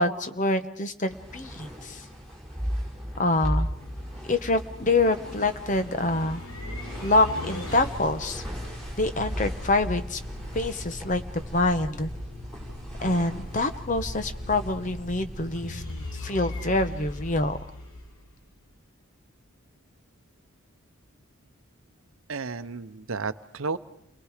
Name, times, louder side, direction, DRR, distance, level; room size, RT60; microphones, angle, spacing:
voice 1, 0.0-2.0 3.2-3.7 4.3-6.4 7.0-8.4 9.0-10.2 10.5-11.2 11.5-12.1 13.0-15.8 16.1-17.6, left 2 dB, 35° left, 10 dB, 1.0 m, -26 dB
sound 1, 1.1-17.3, equal, 5° left, 5.9 m, -37 dB
sound 2, 3.0-18.6, left 1 dB, 80° left, 3.1 m, -40 dB
voice 2, 22.3-23.8, right 4 dB, 70° right, 12 dB, 0.8 m, -32 dB
29.5 x 21.5 x 5.0 m, 0.72 s
head